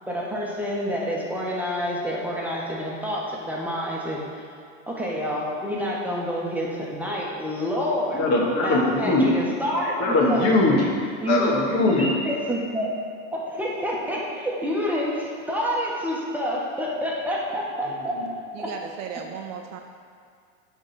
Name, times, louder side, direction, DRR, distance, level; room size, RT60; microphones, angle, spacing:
voice 1, 0.0-4.2 4.9-8.2 8.6-10.5 11.2-11.6 12.0-12.9 13.3-18.1 18.6-18.7, equal, 5° right, -4 dB, 1.3 m, -28 dB
voice 2, 8.2-9.3 10.0-11.0 11.3-12.1 18.2-18.3, left 2 dB, 45° left, -2 dB, 1.6 m, -21 dB
voice 3, 18.5-19.8, right 7 dB, 45° right, 3 dB, 0.6 m, -35 dB
9.5 x 3.7 x 4.2 m, 2.2 s
hypercardioid pair, 110°, 38 cm